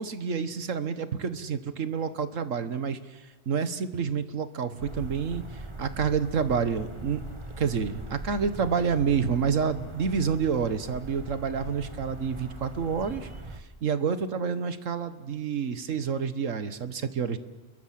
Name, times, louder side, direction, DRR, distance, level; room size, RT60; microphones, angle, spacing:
voice 1, 0.0-7.2 7.6-13.3 13.6-17.4, right 6 dB, 80° right, 12 dB, 1.7 m, -29 dB
sound 1, 4.8-13.6, right 1 dB, 25° right, 1.5 m, -40 dB
30.0 x 22.0 x 7.7 m, 1.1 s
omnidirectional pair, 1.3 m